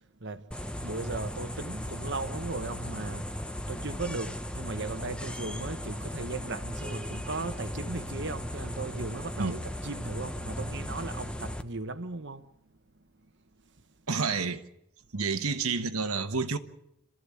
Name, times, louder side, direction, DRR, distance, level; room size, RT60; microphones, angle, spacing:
sound 1, 0.5-11.6, equal, 5° left, 0.9 m, -37 dB
voice 1, 0.8-3.3 3.7-12.4, right 3 dB, 55° right, 1.2 m, -37 dB
voice 2, 14.1-14.6 15.1-16.6, right 4 dB, 75° right, 1.3 m, -29 dB
27.5 x 14.0 x 8.5 m
head